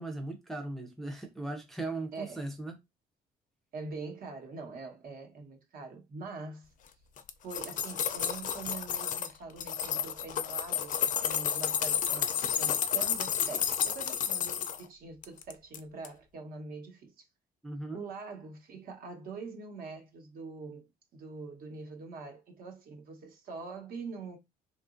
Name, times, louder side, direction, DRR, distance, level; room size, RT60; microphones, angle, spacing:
voice 1, 0.0-2.8 17.6-18.0, right 2 dB, ahead, 0.6 m, -38 dB
voice 2, 2.1-2.5 3.7-6.7 7.4-17.3 17.9-20.9 21.1-24.4, right 4 dB, 60° right, 1.1 m, -44 dB
sound 1, 7.2-9.3 9.6-14.8 15.2-16.1, left 8 dB, 50° left, 0.5 m, -31 dB
2.9 x 2.4 x 2.5 m
cardioid pair, 110°, 17 cm